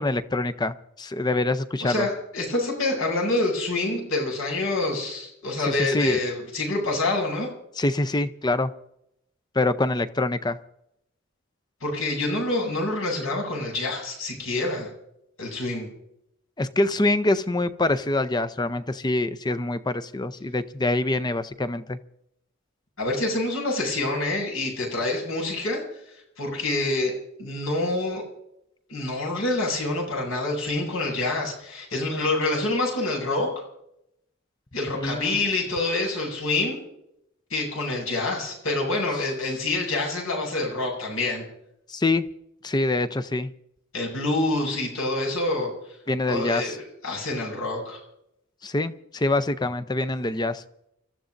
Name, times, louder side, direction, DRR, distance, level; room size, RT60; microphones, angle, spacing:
voice 1, 0.0-2.1 5.7-6.2 7.8-8.7 9.5-10.6 16.6-22.0 34.9-35.4 41.9-42.3 42.6-43.5 46.1-46.8 48.6-50.6, left 2 dB, 20° left, 11 dB, 0.6 m, -25 dB
voice 2, 1.8-7.5 11.8-14.9 15.4-15.9 23.0-27.1 27.4-28.2 28.9-33.5 34.7-36.8 37.5-41.4 43.9-46.0 46.3-48.0, left 2 dB, 85° left, -1 dB, 7.7 m, -27 dB
29.5 x 14.0 x 2.6 m, 0.78 s
head